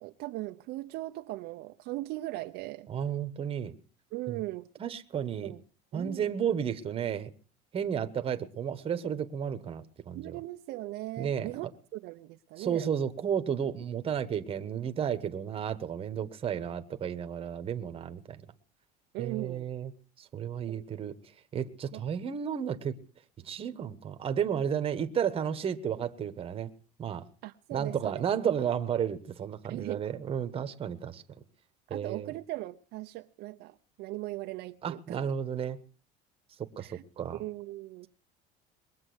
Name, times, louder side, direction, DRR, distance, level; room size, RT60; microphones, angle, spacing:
voice 1, 0.0-2.9 4.1-4.7 5.4-5.6 5.9-6.3 10.1-12.9 19.1-19.7 20.7-20.8 21.9-22.0 27.4-28.2 29.7-30.0 31.9-35.2 36.8-37.0 37.4-38.1, right 18 dB, 60° right, 0.7 m, -39 dB
voice 2, 2.9-3.7 4.3-4.4 4.8-5.5 5.9-7.3 7.7-10.4 11.2-11.5 12.6-18.4 19.2-19.9 20.2-21.2 21.5-22.9 23.4-26.7 27.0-27.3 27.7-31.2 31.9-32.3 34.8-35.8 36.6-37.4, right 8 dB, 30° right, 1.2 m, -32 dB
21.5 x 7.7 x 7.8 m
cardioid pair, 140°, 19 cm